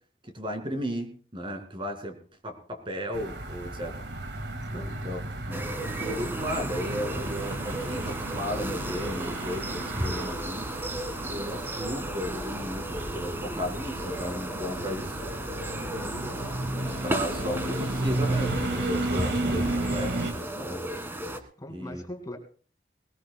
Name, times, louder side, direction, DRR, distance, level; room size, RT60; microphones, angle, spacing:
voice 1, 0.2-2.2 2.4-4.0 4.7-5.2 5.5-5.6 6.0-10.7 11.2-15.2 16.0-16.3 17.0-20.8 21.7-22.0, equal, 30° right, 6 dB, 2.4 m, -35 dB
sound 1, 3.1-20.3, right 2 dB, 80° right, 1.9 m, -33 dB
sound 2, 5.5-21.4, right 1 dB, 15° right, 1.5 m, -34 dB
voice 2, 15.8-16.2 21.6-22.4, left 1 dB, 20° left, 4 dB, 2.3 m, -40 dB
20.0 x 20.0 x 2.3 m, 0.43 s
head